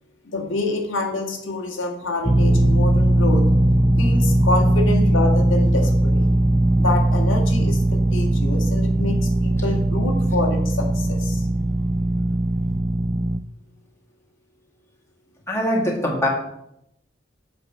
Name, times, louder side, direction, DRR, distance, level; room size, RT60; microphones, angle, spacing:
voice 1, 0.3-3.5 4.0-6.3 6.8-11.5, left 2 dB, 85° left, 1 dB, 1.8 m, -27 dB
sound 1, 2.2-13.4, right 1 dB, 5° right, 0.3 m, -19 dB
voice 2, 15.5-16.3, left 1 dB, 15° left, -2 dB, 1.9 m, -22 dB
8.2 x 5.2 x 6.7 m, 0.80 s
head